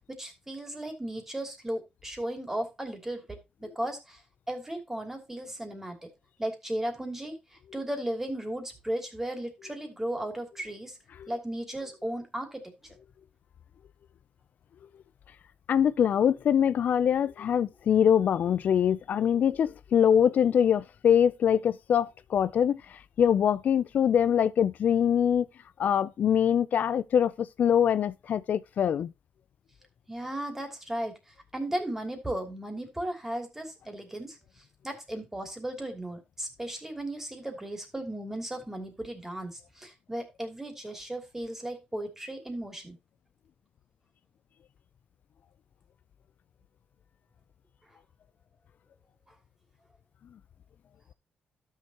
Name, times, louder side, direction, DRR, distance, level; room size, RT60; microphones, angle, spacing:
voice 1, 0.1-4.2 4.5-6.1 6.4-7.4 7.7-11.0 11.3-13.0 30.1-31.1 31.5-34.4 34.8-43.0, right 1 dB, 10° right, 2.8 m, -35 dB
voice 2, 15.7-25.5 25.8-29.1, left 8 dB, 65° left, 0.4 m, -24 dB
12.5 x 6.6 x 2.9 m
cardioid pair, 90°, 3 cm